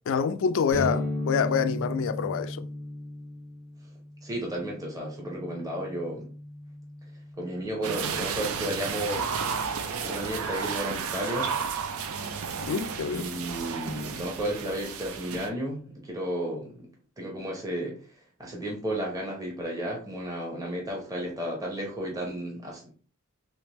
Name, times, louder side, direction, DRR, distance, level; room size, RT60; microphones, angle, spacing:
voice 1, 0.1-2.7 12.6-13.3, left 6 dB, 60° left, 0.3 m, -27 dB
sound 1, 0.7-8.3, left 1 dB, 85° right, 1.6 m, -36 dB
voice 2, 4.2-6.3 7.4-9.4 10.0-11.5 13.1-16.9 17.2-17.9 18.4-22.9, right 1 dB, 15° right, 0.8 m, -33 dB
sound 2, 7.8-15.5, right 6 dB, 70° right, 0.5 m, -32 dB
3.4 x 3.2 x 3.0 m
head